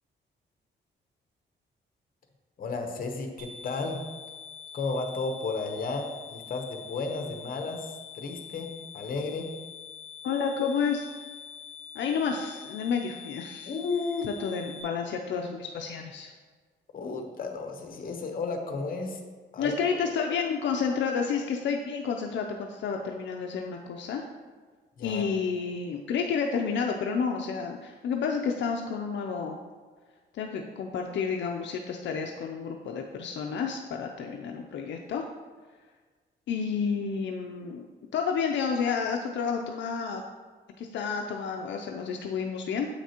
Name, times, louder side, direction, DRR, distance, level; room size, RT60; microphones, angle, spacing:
voice 1, 2.6-4.0 4.7-8.7 8.9-9.5 13.6-14.3 16.9-19.2 19.5-19.7 25.0-25.2, left 3 dB, 50° left, 4 dB, 0.9 m, -33 dB
sound 1, 3.4-14.8, left 7 dB, 80° right, 1.3 m, -45 dB
voice 2, 10.2-11.0 11.9-13.7 14.2-16.3 19.6-24.2 25.0-29.6 30.3-35.3 36.5-37.8 38.1-40.2 40.8-42.9, left 6 dB, 75° left, 2 dB, 0.5 m, -30 dB
7.9 x 5.9 x 2.9 m, 1.4 s
cardioid pair, 130°, 19 cm